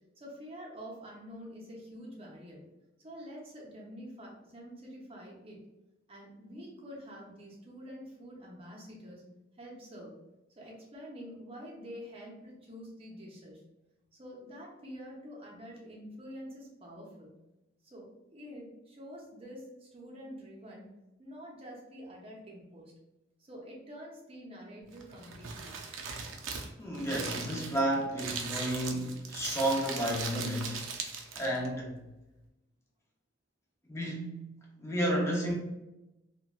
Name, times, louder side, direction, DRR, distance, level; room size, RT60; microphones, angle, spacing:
voice 1, 0.2-2.6 3.0-5.6 6.1-9.2 9.6-10.1 10.6-13.6 14.1-17.3 17.8-20.9 21.2-22.9 23.4-25.7, equal, 30° right, -3 dB, 0.7 m, -47 dB
Crumpling crinkling, 24.9-31.7, right 5 dB, 90° right, 0.4 m, -39 dB
voice 2, 26.8-30.8 31.3-32.0 33.9-34.5 34.8-35.5, right 1 dB, 15° left, -2 dB, 0.6 m, -31 dB
3.0 x 2.2 x 2.3 m, 0.97 s
head